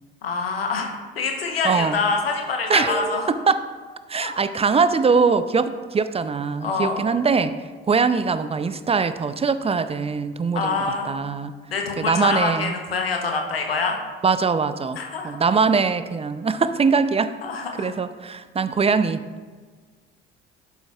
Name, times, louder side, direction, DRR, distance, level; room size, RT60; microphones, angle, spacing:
voice 1, 0.2-3.3 4.2-4.3 6.6-7.0 10.5-11.2 11.7-14.0 15.0-15.4 17.4-17.9, left 4 dB, 90° left, 3 dB, 1.0 m, -25 dB
voice 2, 1.6-2.0 2.7-3.6 4.1-7.6 7.9-10.8 11.1-11.5 12.0-12.7 14.2-15.0 15.2-17.3 17.8-19.3, right 5 dB, 20° right, 12 dB, 0.5 m, -22 dB
11.5 x 7.0 x 2.4 m, 1.5 s
figure-of-eight pair, 55°, 29 cm